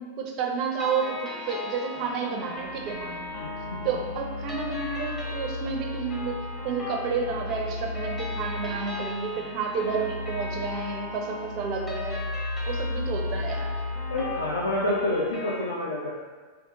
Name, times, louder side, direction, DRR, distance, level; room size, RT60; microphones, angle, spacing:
voice 1, 0.0-3.3 3.8-6.4 6.6-12.2 12.7-13.7, right 5 dB, 40° right, 1 dB, 0.4 m, -31 dB
sound 1, 0.8-15.6, left 2 dB, 20° left, 0.7 m, -38 dB
sound 2, 2.6-15.3, left 2 dB, 50° left, 1.2 m, -35 dB
voice 2, 3.3-3.8 14.1-16.1, left 1 dB, 75° left, -5 dB, 0.4 m, -28 dB
3.4 x 2.3 x 2.8 m, 1.4 s
figure-of-eight pair, 90°, 0 cm